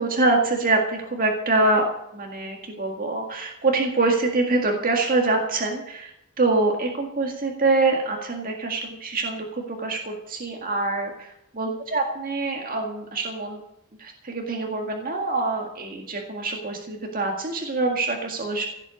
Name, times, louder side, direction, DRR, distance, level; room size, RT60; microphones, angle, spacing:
voice 1, 0.0-1.9 2.1-6.1 6.4-13.6 14.0-18.7, right 3 dB, 45° right, 1 dB, 1.9 m, -25 dB
16.0 x 8.1 x 8.3 m, 0.81 s
head